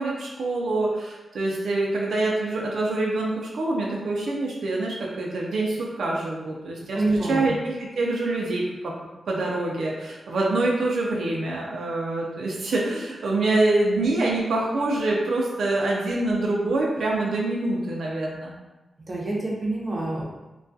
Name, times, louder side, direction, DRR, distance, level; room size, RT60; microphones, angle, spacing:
voice 1, 0.0-8.9 9.3-18.6, right 2 dB, 85° right, -2 dB, 0.4 m, -25 dB
voice 2, 6.9-7.5 19.1-20.2, right 2 dB, 30° right, -4 dB, 0.6 m, -26 dB
2.3 x 2.2 x 2.6 m, 1.1 s
wide cardioid pair, 110°, 0 cm